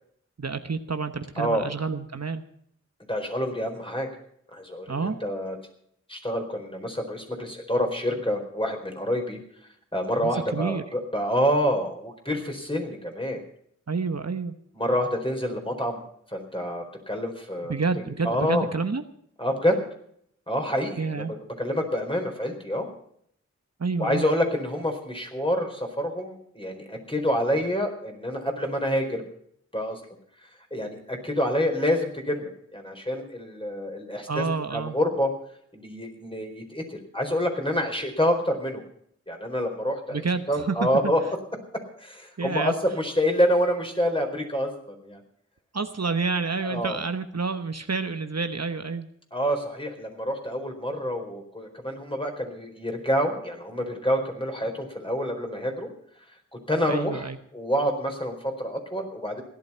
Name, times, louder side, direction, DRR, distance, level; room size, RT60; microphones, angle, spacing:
voice 1, 0.4-2.4 4.9-5.2 10.2-10.8 13.9-14.5 17.7-19.0 21.0-21.3 23.8-24.3 34.3-35.0 40.1-40.9 42.4-42.8 45.7-49.1 56.9-57.4, right 4 dB, 60° right, 8 dB, 1.1 m, -29 dB
voice 2, 1.4-1.7 3.1-4.1 4.5-5.6 6.1-9.4 9.9-13.4 14.8-16.0 16.3-17.7 18.2-18.6 19.4-19.8 20.5-22.9 24.0-29.2 29.7-30.0 30.7-34.5 34.7-35.3 35.7-38.8 39.3-40.2 40.5-41.2 42.0-45.2 46.6-47.0 49.3-55.9 56.7-57.3 57.5-59.4, equal, 20° left, 3 dB, 4.4 m, -27 dB
17.0 x 11.5 x 5.7 m, 0.66 s
wide cardioid pair, 50°, 30 cm